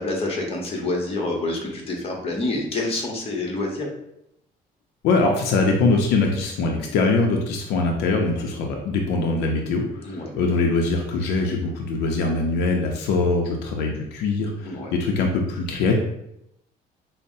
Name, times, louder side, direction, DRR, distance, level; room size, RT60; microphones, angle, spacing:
voice 1, 0.0-3.9 10.0-10.4 14.7-14.9, left 2 dB, 35° left, 0 dB, 0.9 m, -27 dB
voice 2, 5.0-16.0, left 3 dB, 85° left, 1 dB, 0.5 m, -22 dB
5.3 x 2.0 x 2.6 m, 0.81 s
cardioid pair, 110°, 17 cm